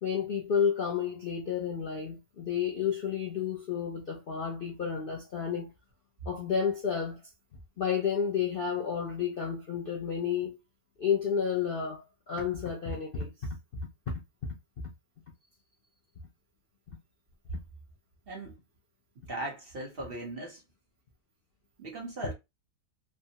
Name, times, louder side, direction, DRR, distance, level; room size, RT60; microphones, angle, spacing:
voice 1, 0.0-5.7 6.3-7.2 7.8-10.6 11.0-13.8 14.1-14.2, left 7 dB, 85° left, 0.4 m, -31 dB
voice 2, 19.3-20.6 21.8-22.3, right 1 dB, 45° right, 0.9 m, -38 dB
3.3 x 2.0 x 2.8 m
omnidirectional pair, 1.8 m